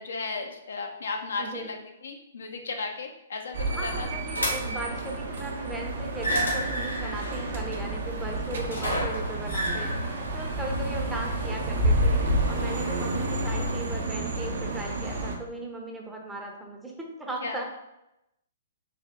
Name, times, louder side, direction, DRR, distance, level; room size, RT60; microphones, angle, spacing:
voice 1, 0.0-1.8 2.0-4.1 17.4-17.6, left 4 dB, 65° left, 4 dB, 0.5 m, -35 dB
voice 2, 1.4-1.7 3.7-17.6, right 1 dB, 5° right, 0 dB, 0.6 m, -37 dB
sound 1, 3.5-15.4, right 2 dB, 60° right, 0.6 m, -32 dB
sound 2, 4.3-4.9 6.1-12.7, equal, 80° left, 1.1 m, -28 dB
3.5 x 2.8 x 3.5 m, 0.88 s
figure-of-eight pair, 115°, 0 cm